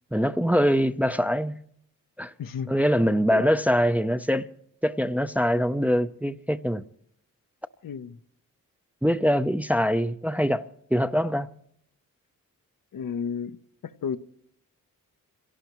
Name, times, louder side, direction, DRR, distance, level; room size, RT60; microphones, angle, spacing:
voice 1, 0.1-1.5 2.2-2.3 2.7-4.5 4.8-6.8 9.0-10.6 10.9-11.5, equal, 5° right, 0.6 m, -23 dB
voice 2, 2.4-2.7 3.3-3.5 7.8-8.2 12.9-13.6 13.8-14.2, left 7 dB, 70° left, 0.8 m, -32 dB
26.0 x 17.5 x 3.1 m
cardioid pair, 65°, 34 cm